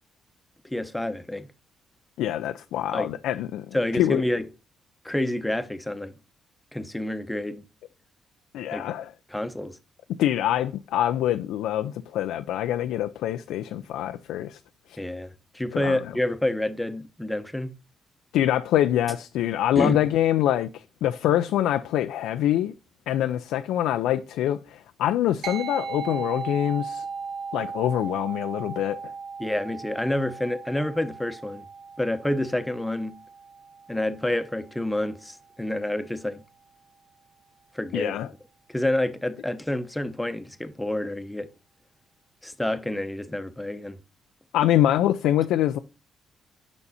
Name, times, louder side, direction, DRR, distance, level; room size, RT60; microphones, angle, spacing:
voice 1, 0.6-1.5 2.9-3.1 3.7-4.4 5.0-6.1 6.7-7.6 8.7-8.9 9.3-9.8 15.0-17.7 19.8-20.0 29.4-31.6 32.0-33.2 33.9-36.4 37.7-38.1 38.7-41.5 42.4-44.0, left 1 dB, 5° left, 0.8 m, -28 dB
voice 2, 2.2-4.2 8.5-9.1 10.2-14.6 15.7-16.0 18.3-22.7 23.1-27.0 27.5-29.1 37.9-38.3 44.5-45.8, left 12 dB, 90° left, 0.3 m, -25 dB
sound 1, 25.4-35.1, right 5 dB, 60° right, 1.8 m, -37 dB
7.0 x 5.4 x 4.1 m
cardioid pair, 90°, 0 cm